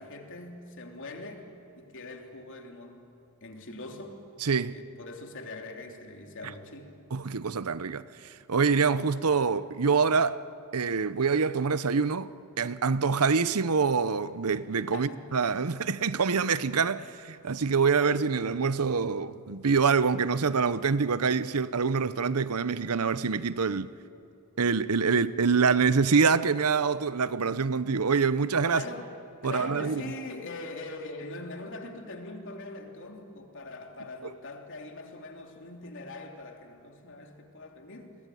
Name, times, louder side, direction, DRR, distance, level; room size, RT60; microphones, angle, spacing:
voice 1, 0.0-3.1 3.4-4.2 4.7-7.0 14.9-15.2 28.7-29.1 29.4-38.2, left 2 dB, 60° left, 3.2 m, -42 dB
voice 2, 4.4-4.7 7.1-8.0 8.5-10.4 10.7-12.3 12.6-23.9 24.6-28.8 29.4-30.0 34.2-34.3, right 5 dB, 90° right, 0.8 m, -25 dB
29.5 x 21.5 x 9.3 m
head